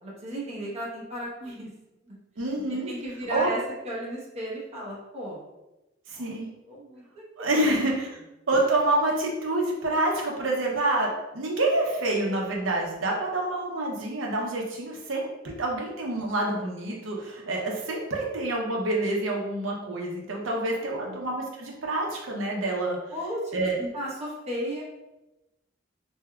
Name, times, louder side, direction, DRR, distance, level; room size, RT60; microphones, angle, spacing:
voice 1, 0.0-1.7 2.0-2.2 2.9-3.6 3.8-5.4 6.1-6.3 6.7-7.8 20.4-20.6 21.0-21.2 23.1-24.8, equal, 35° right, -5 dB, 1.0 m, -35 dB
voice 2, 2.4-2.9 3.3-3.5 6.1-6.5 7.4-8.1 8.5-11.1 11.3-23.0 23.5-23.8, right 2 dB, 85° right, -1 dB, 0.7 m, -27 dB
3.4 x 2.6 x 2.3 m, 0.98 s
head